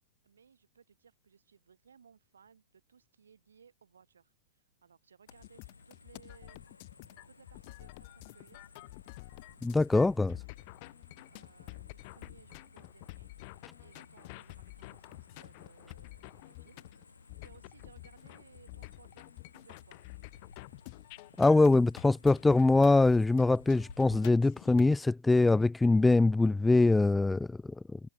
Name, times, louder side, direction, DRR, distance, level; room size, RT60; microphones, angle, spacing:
voice 1, 0.2-6.7 7.3-8.8 11.3-13.3 13.8-16.8 17.4-20.0, right 6 dB, 70° right, 7.5 m, -61 dB
sound 1, 5.3-24.3, left 4 dB, 80° left, 2.2 m, -57 dB
sound 2, 5.3-25.0, left 31 dB, 40° left, 0.9 m, -50 dB
voice 2, 9.6-10.4 21.4-28.0, left 3 dB, 5° left, 0.3 m, -23 dB
figure-of-eight pair, 110°, 0 cm